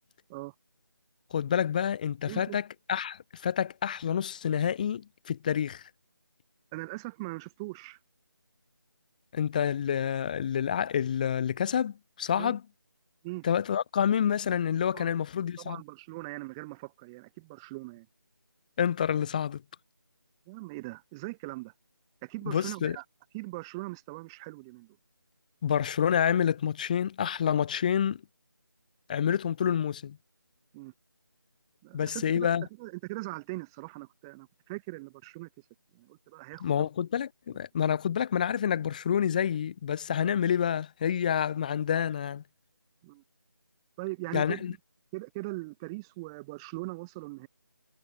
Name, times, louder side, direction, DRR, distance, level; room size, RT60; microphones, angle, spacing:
voice 1, 1.3-2.6 2.9-5.8 9.3-12.6 13.4-15.8 18.8-19.6 22.5-23.0 25.6-28.2 29.1-30.2 31.9-32.6 36.6-42.4 44.3-44.7, left 8 dB, 20° left, 1.4 m, -28 dB
voice 2, 2.3-2.6 6.7-8.0 12.4-12.5 13.2-13.5 14.9-15.1 15.6-18.1 20.5-21.7 22.2-23.0 23.3-25.0 30.7-30.9 31.8-32.5 32.8-35.5 35.9-36.9 43.0-43.2 44.0-44.8 45.1-47.5, right 23 dB, 10° right, 1.8 m, -40 dB
figure-of-eight pair, 160°, 12 cm